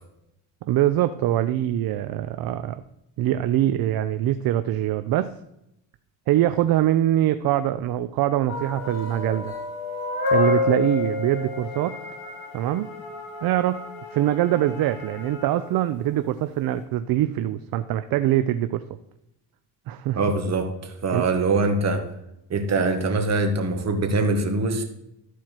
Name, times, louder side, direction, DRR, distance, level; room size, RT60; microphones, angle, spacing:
voice 1, 0.7-2.8 3.2-5.3 6.3-9.6 10.3-12.0 12.5-12.9 13.4-18.8 19.9-20.2 21.1-21.2, right 13 dB, 60° right, 11 dB, 0.5 m, -23 dB
sound 1, 8.5-16.0, left 3 dB, 60° left, 3.3 m, -30 dB
voice 2, 20.1-22.1 22.5-24.8, right 3 dB, 40° right, 5 dB, 1.6 m, -23 dB
13.0 x 4.6 x 4.4 m, 0.83 s
cardioid pair, 110°, 41 cm